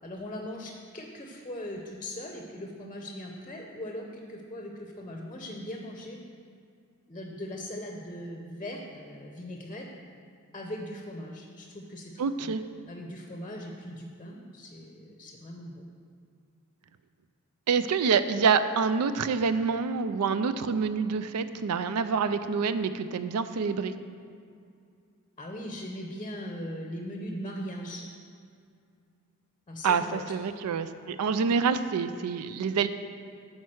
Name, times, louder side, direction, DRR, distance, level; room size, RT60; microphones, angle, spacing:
voice 1, 0.0-6.2 7.1-9.9 10.5-12.1 12.4-12.5 12.9-15.9 25.4-28.1 29.7-30.3, left 1 dB, 25° left, 1 dB, 0.7 m, -39 dB
voice 2, 12.2-12.6 17.7-23.9 29.8-32.9, right 5 dB, 85° right, 12 dB, 0.4 m, -27 dB
8.7 x 4.6 x 6.2 m, 2.3 s
head